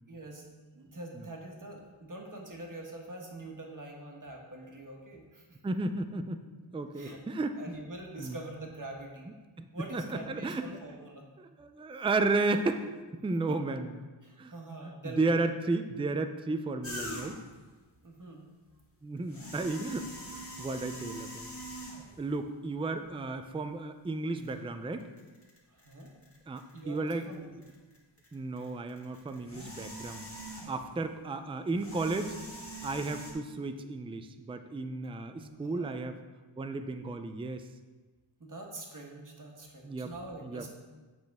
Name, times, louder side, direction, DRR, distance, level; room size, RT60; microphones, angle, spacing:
voice 1, 0.1-5.5 6.9-7.2 7.6-9.3 9.7-11.2 13.5-13.6 14.2-15.3 18.0-18.4 25.7-26.1 26.7-27.5 35.4-35.9 38.4-40.7, right 2 dB, 40° right, 0 dB, 1.4 m, -44 dB
voice 2, 5.6-6.4 6.7-7.8 8.2-8.4 9.6-10.8 11.4-12.9 13.1-14.1 14.4-14.5 14.8-17.4 19.0-21.5 22.2-25.1 26.5-27.3 28.3-32.4 32.8-36.2 36.6-37.6 39.8-40.1 40.4-40.6, right 3 dB, 10° right, 8 dB, 0.4 m, -33 dB
sound 1, 16.8-17.6 19.2-22.2 23.1-23.2 24.4-24.5 25.0-27.3 27.6-31.0 31.7-33.3, equal, 25° left, 1.8 m, -43 dB
7.8 x 6.1 x 3.5 m, 1.3 s
wide cardioid pair, 95°, 50 cm